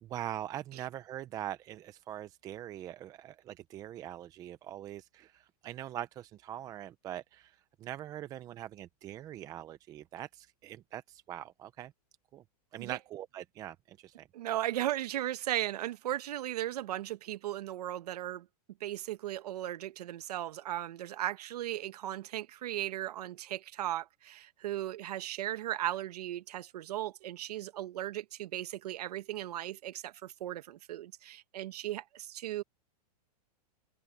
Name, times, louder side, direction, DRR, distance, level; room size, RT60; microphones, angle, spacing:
voice 1, 0.0-11.9 12.3-12.4 12.7-14.3, right 12 dB, 15° right, 0.5 m, -42 dB
voice 2, 14.3-18.5 18.8-32.6, right 13 dB, 70° right, 1.5 m, -36 dB
supercardioid pair, 155°, 21 cm